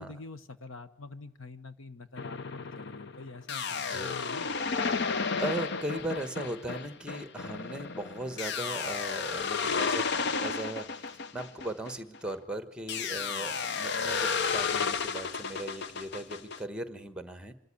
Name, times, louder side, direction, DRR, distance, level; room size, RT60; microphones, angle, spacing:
voice 1, 0.0-4.6, left 3 dB, 70° left, 11 dB, 1.2 m, -46 dB
sound 1, 2.2-12.3 12.9-16.6, left 5 dB, 55° left, 0.7 m, -32 dB
voice 2, 3.8-4.2 4.9-17.5, right 1 dB, 5° right, 10 dB, 1.3 m, -38 dB
26.0 x 13.5 x 8.6 m, 0.76 s
head